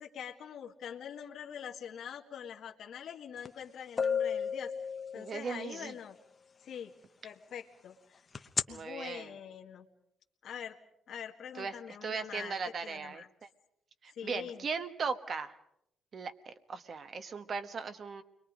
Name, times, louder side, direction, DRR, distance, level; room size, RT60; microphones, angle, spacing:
voice 1, 0.0-4.7 5.1-6.2 6.6-6.9 7.2-8.2 8.7-9.9 10.4-10.8 11.1-13.3 14.1-14.7, left 8 dB, 55° left, 0 dB, 2.0 m, -44 dB
sound 1, 3.5-3.6 4.0-5.7 8.4-8.6, left 6 dB, 25° left, 0.9 m, -32 dB
voice 2, 5.1-5.9 8.7-9.3 11.6-11.8 12.0-13.2 14.0-15.5 16.1-18.2, right 5 dB, 35° right, 9 dB, 1.2 m, -38 dB
30.0 x 23.0 x 5.1 m, 0.76 s
cardioid pair, 175°, 0 cm